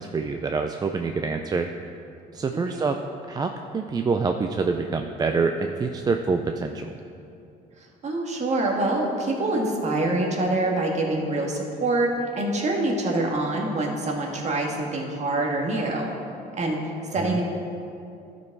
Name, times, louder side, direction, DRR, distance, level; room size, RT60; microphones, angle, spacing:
voice 1, 0.0-1.7 2.3-3.0 3.3-6.9 17.2-17.4, right 4 dB, 25° right, 5 dB, 0.4 m, -26 dB
voice 2, 7.8-12.1 12.3-16.1 16.6-17.4, right 2 dB, 40° right, 0 dB, 1.6 m, -25 dB
12.5 x 5.3 x 4.7 m, 2.6 s
cardioid pair, 110°, 17 cm